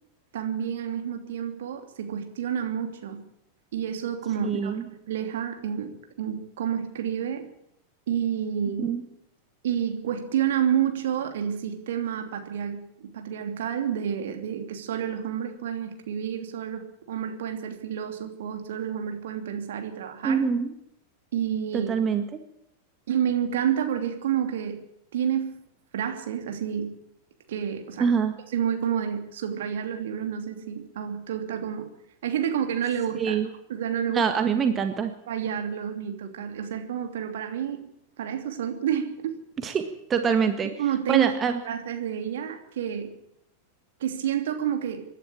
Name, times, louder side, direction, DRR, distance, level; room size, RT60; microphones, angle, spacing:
voice 1, 0.3-3.2 3.7-7.5 8.1-9.0 9.6-20.5 21.3-21.9 23.1-24.8 25.1-25.6 25.9-26.9 27.5-28.1 28.5-31.9 32.2-33.4 33.7-34.3 35.3-37.8 38.2-39.4 40.8-41.3 41.6-43.1 44.0-45.1, right 9 dB, 60° right, 5 dB, 2.9 m, -29 dB
voice 2, 4.4-4.8 8.8-9.0 20.2-20.7 21.7-22.4 28.0-28.3 33.2-33.5 34.1-35.1 39.6-40.7 41.1-41.6, right 6 dB, 25° right, 7 dB, 1.8 m, -25 dB
25.0 x 11.5 x 8.8 m, 0.78 s
figure-of-eight pair, 90°, 0 cm